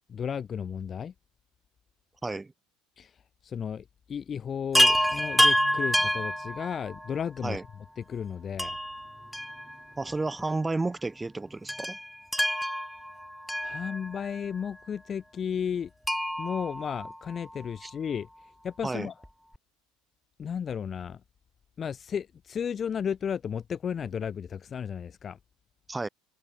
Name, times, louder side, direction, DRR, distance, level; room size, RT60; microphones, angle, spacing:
voice 1, 0.1-1.1 3.0-3.2 3.4-7.6 8.0-8.8 13.6-15.9 16.4-18.3 18.6-19.1 20.4-21.2 21.8-25.4, left 7 dB, 35° left, 1.8 m, -34 dB
voice 2, 2.2-2.5 7.4-7.6 10.0-12.0 17.8-17.9 18.8-19.1 25.9-26.1, right 3 dB, 15° right, 6.7 m, -31 dB
Chime, 4.7-7.2 8.6-10.1 10.4-10.5 11.7-14.4 16.0-17.7 19.2-19.3 19.5-19.6, equal, ahead, 0.9 m, -28 dB
hypercardioid pair, 85°, 0 cm